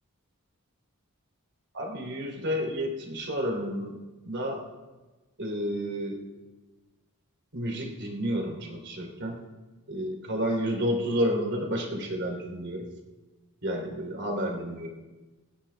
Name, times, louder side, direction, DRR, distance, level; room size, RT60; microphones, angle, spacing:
voice 1, 1.7-4.0 4.2-4.6 5.4-6.2 7.5-9.4 9.9-12.9 13.6-14.9, equal, 50° right, 1 dB, 2.9 m, -30 dB
26.0 x 10.0 x 3.4 m, 1.2 s
head